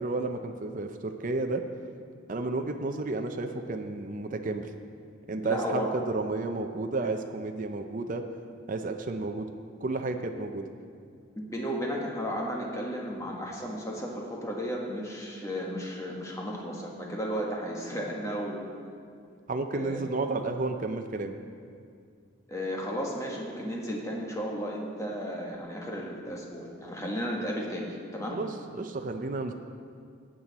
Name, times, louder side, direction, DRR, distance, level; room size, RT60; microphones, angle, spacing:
voice 1, 0.0-1.6 2.3-4.7 5.3-8.3 8.7-9.5 9.8-10.7 19.5-21.4 28.3-29.5, right 3 dB, 40° right, 5 dB, 0.5 m, -32 dB
voice 2, 5.4-5.9 11.4-18.7 19.7-20.2 22.5-28.4, equal, 15° left, -2 dB, 1.5 m, -34 dB
15.0 x 8.9 x 4.1 m, 2.2 s
head